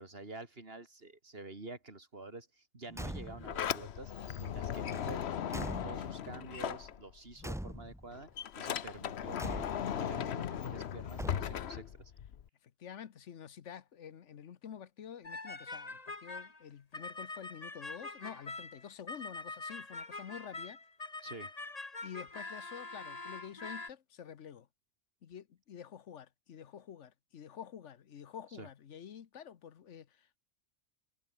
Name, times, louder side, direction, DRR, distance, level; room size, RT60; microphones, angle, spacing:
voice 1, 0.0-4.1 4.4-5.2 5.5-8.3 8.5-9.7 9.9-12.1 21.2-21.5 28.6-28.7, right 2 dB, 55° right, 3.3 m, -48 dB
Car / Truck / Slam, 2.9-3.6 4.9-6.3 7.4-8.2 9.4-10.1 11.1-11.8, equal, 5° right, 0.6 m, -43 dB
Sliding door, 3.1-7.4 7.7-12.5, left 9 dB, 65° left, 1.1 m, -38 dB
voice 2, 12.6-20.8 22.0-24.7 25.2-30.4, left 8 dB, 85° left, 1.3 m, -49 dB
sound 1, 15.2-16.6 16.9-23.9, left 3 dB, 35° left, 2.0 m, -44 dB
omnidirectional pair, 1.2 m